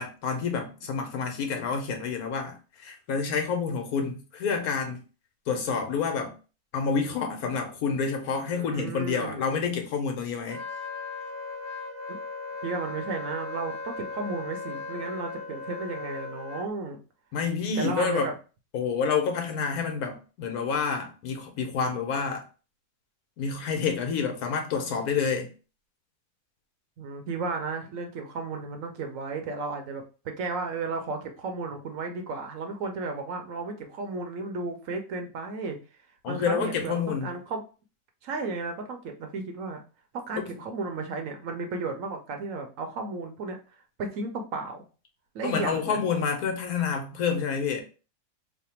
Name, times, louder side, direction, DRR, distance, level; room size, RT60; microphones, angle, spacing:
voice 1, 0.0-5.0 5.5-6.3 6.7-10.6 17.3-18.3 18.7-22.4 23.4-25.5 36.2-37.3 40.4-40.5 45.4-47.8, left 5 dB, 85° left, 1.3 m, -28 dB
voice 2, 8.5-9.7 12.1-12.2 12.6-17.0 17.8-18.3 27.0-35.8 36.3-37.6 38.2-39.8 40.1-43.6 44.0-44.8 45.3-46.0, right 3 dB, 70° right, 1.0 m, -34 dB
Wind instrument woodwind instrument, 10.5-16.7, left 3 dB, 15° left, 0.7 m, -37 dB
3.3 x 2.2 x 4.3 m
omnidirectional pair, 1.5 m